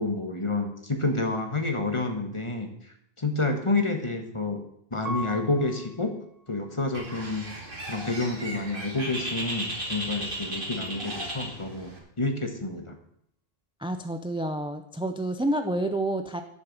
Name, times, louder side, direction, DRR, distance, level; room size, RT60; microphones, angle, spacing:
voice 1, 0.0-2.7 3.2-4.6 4.9-6.2 6.5-7.5 7.9-13.0, left 2 dB, 30° left, 5 dB, 1.6 m, -29 dB
Piano, 5.0-7.8 8.4-9.1, left 1 dB, 40° right, 1.7 m, -41 dB
Bird, 6.9-12.0, right 1 dB, 55° right, 2.7 m, -35 dB
voice 2, 13.8-16.4, right 1 dB, 5° right, 8 dB, 0.5 m, -29 dB
11.5 x 7.0 x 7.3 m, 0.72 s
omnidirectional pair, 1.0 m